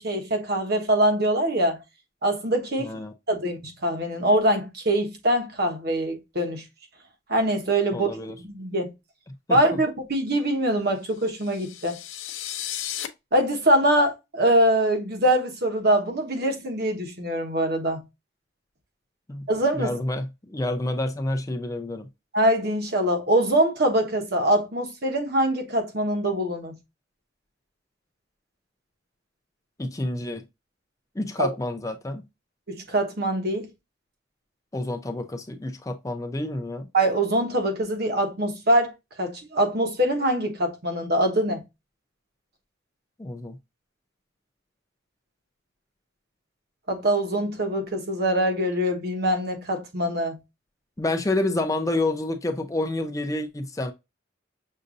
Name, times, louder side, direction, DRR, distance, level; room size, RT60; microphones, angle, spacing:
voice 1, 0.0-1.8 2.2-2.9 3.3-6.6 7.3-8.9 9.5-12.0 13.3-18.0 19.5-19.9 22.3-26.7 31.4-31.5 32.7-33.7 36.9-38.9 39.2-41.6 46.9-50.4, right 1 dB, 55° right, 1.1 m, -23 dB
voice 2, 2.8-3.1 7.9-8.4 9.5-9.6 19.3-19.5 19.7-22.1 29.8-30.4 31.2-32.2 34.7-36.9 43.2-43.6 51.0-53.9, left 2 dB, 15° left, 0.5 m, -28 dB
sound 1, 11.2-13.1, left 11 dB, 85° left, 0.6 m, -34 dB
6.5 x 2.6 x 2.5 m
head